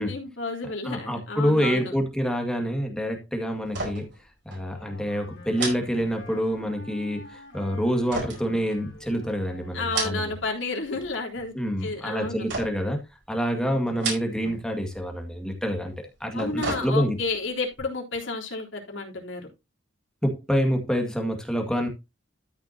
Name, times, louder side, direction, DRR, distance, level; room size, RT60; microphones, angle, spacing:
voice 1, 0.0-1.9 9.7-11.5 11.8-12.5 13.5-13.8 16.3-19.5, left 3 dB, 80° left, 3.5 m, -31 dB
voice 2, 0.8-4.1 4.5-10.3 11.5-13.0 13.3-17.2 20.2-21.9, equal, 5° left, 2.0 m, -27 dB
sound 1, 3.7-4.2 4.5-4.7 5.5-6.6 8.1-9.2 9.7-10.5 10.8-11.4 12.5-13.0 13.9-14.6 14.9-15.0 16.1-17.3 17.7-17.8, right 3 dB, 65° right, 4.6 m, -33 dB
Wind instrument woodwind instrument, 4.5-10.2, left 1 dB, 60° left, 3.4 m, -48 dB
13.5 x 6.2 x 2.8 m
head